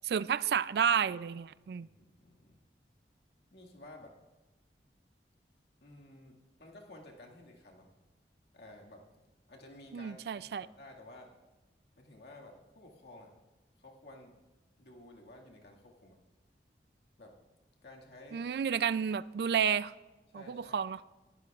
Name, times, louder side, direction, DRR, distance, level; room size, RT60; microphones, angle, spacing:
voice 1, 0.0-1.9 9.9-10.7 18.3-19.9 20.3-21.0, right 7 dB, 65° right, 18 dB, 0.3 m, -31 dB
voice 2, 1.8-2.6 3.5-4.2 5.8-7.9 8.5-9.0 9.5-11.3 12.0-13.3 13.8-14.3 14.8-16.2 17.2-17.3 17.8-18.5 20.3-20.8, left 1 dB, 70° left, -1 dB, 1.9 m, -53 dB
20.5 x 12.0 x 2.4 m, 1.1 s
head